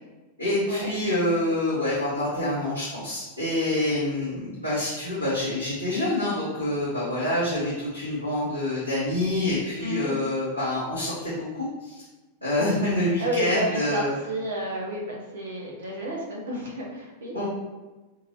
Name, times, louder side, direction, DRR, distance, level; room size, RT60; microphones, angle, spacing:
voice 1, 0.4-12.0 12.4-14.1 17.3-17.5, left 1 dB, 85° right, -10 dB, 1.2 m, -26 dB
voice 2, 9.8-10.1 13.2-17.3, right 1 dB, 65° right, -1 dB, 1.0 m, -31 dB
4.3 x 2.9 x 2.8 m, 1.2 s
figure-of-eight pair, 90°, 0 cm